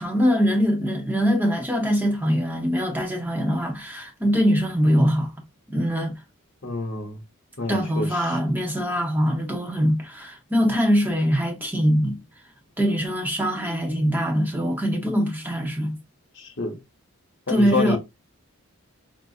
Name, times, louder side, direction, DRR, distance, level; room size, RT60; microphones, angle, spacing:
voice 1, 0.0-5.3 5.7-6.2 7.7-12.2 12.8-16.0 17.5-18.0, equal, 10° right, 0.7 m, -22 dB
voice 2, 6.6-7.2 7.6-8.4 16.4-16.8 17.5-18.0, left 3 dB, 55° left, 0.8 m, -28 dB
3.8 x 2.4 x 2.4 m
head